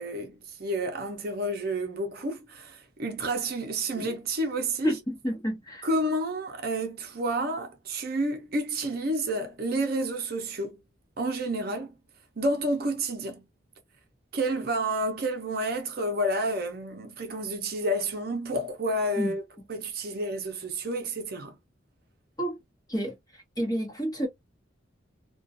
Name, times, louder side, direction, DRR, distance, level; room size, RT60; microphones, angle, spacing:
voice 1, 0.0-4.9 5.8-10.8 11.2-11.9 12.4-13.4 14.3-19.4 19.7-21.5, right 1 dB, 50° right, 0.6 m, -30 dB
voice 2, 4.8-5.9 19.2-19.4 22.4-22.6 22.9-24.3, right 1 dB, 20° left, 1.0 m, -30 dB
2.4 x 2.2 x 2.5 m
head